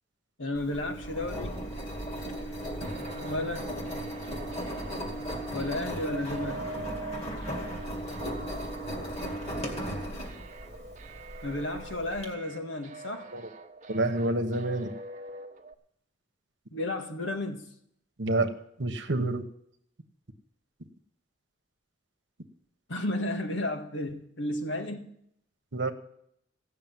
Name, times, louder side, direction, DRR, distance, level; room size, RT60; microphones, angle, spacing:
voice 1, 0.4-1.5 3.2-3.8 5.5-6.6 11.4-13.2 16.7-17.7 22.9-25.1, left 1 dB, 90° left, 5 dB, 1.7 m, -33 dB
Engine, 0.6-12.3, equal, 35° left, 2.2 m, -36 dB
sound 1, 2.8-15.7, right 2 dB, 40° right, 1.1 m, -44 dB
voice 2, 13.9-14.9 18.2-18.5 18.8-19.4 25.7-25.9, right 2 dB, 65° right, 8 dB, 1.2 m, -28 dB
15.5 x 6.6 x 9.2 m, 0.72 s
head